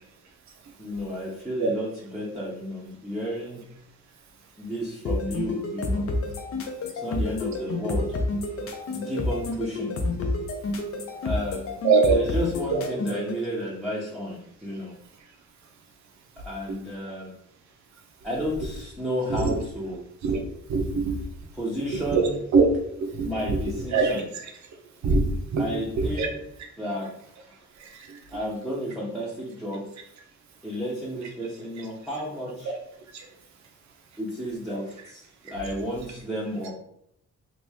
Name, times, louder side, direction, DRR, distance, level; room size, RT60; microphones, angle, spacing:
voice 1, 0.8-3.6 4.6-6.1 7.0-8.1 8.9-9.9 11.2-11.7 12.1-14.9 16.4-17.3 18.2-20.0 21.5-22.4 23.2-24.2 25.6-26.3 26.8-27.1 27.4-27.6 28.3-29.8 30.6-32.7 34.2-35.2 35.5-36.7, equal, ahead, -7 dB, 0.7 m, -32 dB
sound 1, 5.0-13.3, left 2 dB, 50° left, 0.6 m, -29 dB
voice 2, 11.8-12.2 12.7-12.8 16.7-16.8 19.3-19.6 20.2-20.4 20.7-21.2 22.1-22.6 23.0-24.5 25.0-25.7 26.0-26.3 27.8-28.2 32.6-32.8 33.1-33.3, right 4 dB, 70° right, 3 dB, 0.7 m, -24 dB
3.0 x 2.5 x 3.4 m, 0.73 s
cardioid pair, 105°, 29 cm